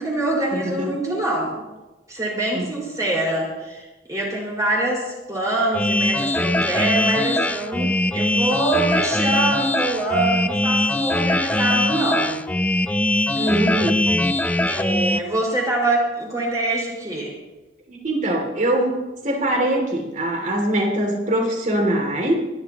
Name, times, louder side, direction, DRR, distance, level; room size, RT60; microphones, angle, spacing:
voice 1, 0.0-1.6 2.1-7.9 8.1-12.4 14.7-17.3, right 2 dB, 20° right, -4 dB, 4.8 m, -24 dB
sound 1, 5.7-15.2, left 1 dB, 10° left, 0.4 m, -21 dB
voice 2, 13.3-14.0 17.9-22.4, right 1 dB, 45° right, 1 dB, 2.7 m, -22 dB
24.5 x 11.5 x 3.0 m, 1.1 s
head